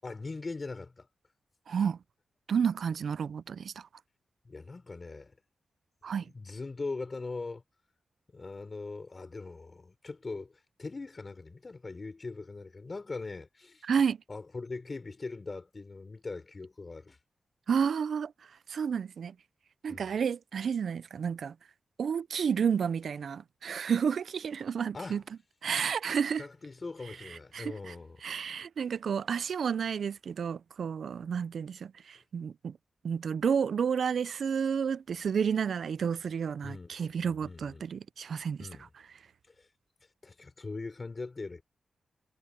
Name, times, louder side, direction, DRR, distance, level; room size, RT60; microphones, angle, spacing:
voice 1, 0.0-1.1 4.4-5.3 6.3-7.6 8.3-13.9 14.3-17.2 19.9-20.1 24.9-25.2 26.3-28.2 36.6-37.8 38.6-38.9 39.5-39.7 40.2-41.6, left 3 dB, 35° left, 5.3 m, -41 dB
voice 2, 1.7-2.0 2.5-3.9 6.0-6.2 13.8-14.2 17.7-18.3 18.7-19.3 19.8-21.5 22.0-25.2 25.6-26.5 27.5-27.9 28.2-32.7 33.0-38.7, right 7 dB, 70° right, 0.3 m, -31 dB
wide cardioid pair, 100°, 0 cm